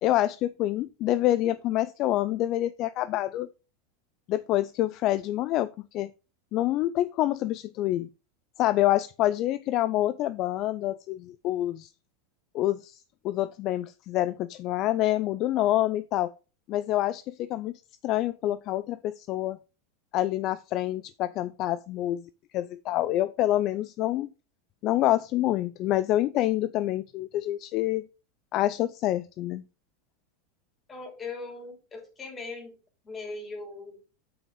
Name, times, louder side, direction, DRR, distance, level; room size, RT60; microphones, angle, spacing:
voice 1, 0.0-3.5 4.3-6.1 6.5-8.1 8.6-11.9 12.5-13.0 13.2-16.3 16.7-17.7 18.0-19.6 20.1-22.2 22.5-24.3 24.8-28.1 28.5-29.6, left 14 dB, 50° left, 0.4 m, -27 dB
voice 2, 30.9-32.7 33.0-34.0, left 3 dB, 25° left, 3.4 m, -39 dB
7.9 x 6.0 x 3.7 m
hypercardioid pair, 100°, 0 cm